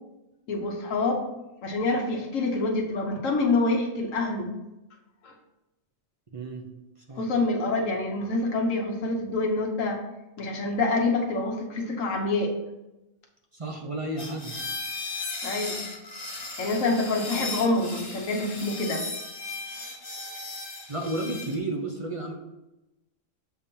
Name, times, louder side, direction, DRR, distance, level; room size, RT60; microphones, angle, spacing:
voice 1, 0.5-1.2 1.6-4.5 5.2-5.3 7.1-10.0 10.4-12.5 15.4-15.8 16.6-19.0, left 2 dB, 75° left, 1 dB, 1.2 m, -26 dB
voice 2, 6.3-6.6 7.1-7.2 13.5-14.6 20.9-22.3, right 2 dB, 35° right, 1 dB, 0.5 m, -32 dB
sound 1, 14.2-21.6, left 3 dB, 35° left, 1.0 m, -36 dB
6.9 x 2.8 x 5.2 m, 0.98 s
omnidirectional pair, 1.3 m